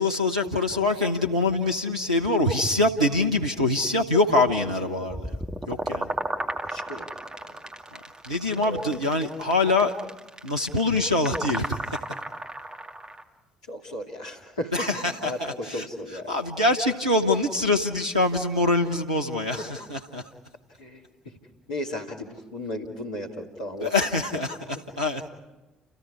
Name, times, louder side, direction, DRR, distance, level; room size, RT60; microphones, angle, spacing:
voice 1, 0.0-5.4 5.7-6.1 8.3-9.9 10.4-11.8 14.7-20.2 23.8-25.3, left 2 dB, 85° right, 1 dB, 1.0 m, -24 dB
sound 1, 5.1-13.2, right 1 dB, 20° right, 2.2 m, -34 dB
voice 2, 6.6-7.1 7.4-7.6 8.5-8.9 13.7-14.9 15.2-16.3 20.8-21.3 21.7-23.9, left 1 dB, 75° left, 0 dB, 2.6 m, -35 dB
30.0 x 28.0 x 4.9 m, 1.1 s
figure-of-eight pair, 50°, 3 cm